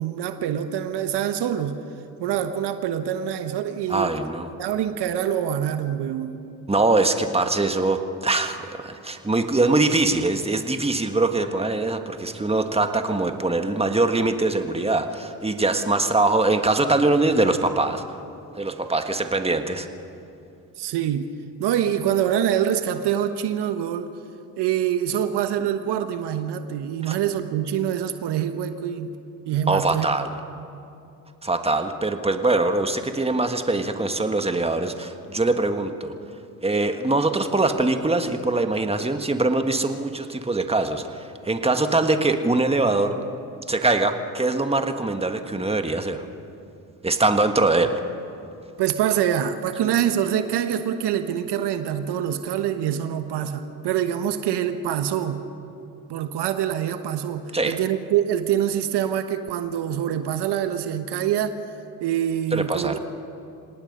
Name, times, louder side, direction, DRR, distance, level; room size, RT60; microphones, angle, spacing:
voice 1, 0.0-1.8 2.2-4.2 4.6-6.4 20.8-21.3 21.6-24.1 24.6-29.1 29.5-30.1 48.8-55.4 56.1-61.6 62.0-63.0, right 10 dB, 70° right, 9 dB, 1.2 m, -25 dB
voice 2, 3.9-4.5 6.7-18.0 18.6-19.9 27.1-27.2 29.7-30.3 31.4-36.1 36.6-43.1 43.7-46.3 47.0-48.0 57.5-57.8 62.5-63.0, right 2 dB, 15° right, 7 dB, 1.7 m, -22 dB
26.5 x 18.0 x 5.5 m, 2.7 s
hypercardioid pair, 55°, 42 cm